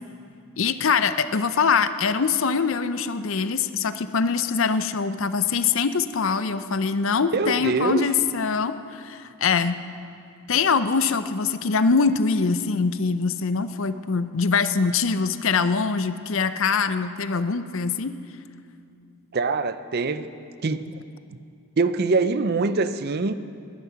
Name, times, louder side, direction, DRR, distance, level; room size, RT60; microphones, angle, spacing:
voice 1, 0.6-9.8 10.5-18.1, left 5 dB, 65° left, 12 dB, 0.6 m, -23 dB
voice 2, 7.3-8.0 19.3-20.3 20.6-20.8 21.8-23.4, right 3 dB, 45° right, 12 dB, 0.5 m, -23 dB
20.0 x 11.0 x 5.8 m, 2.5 s
head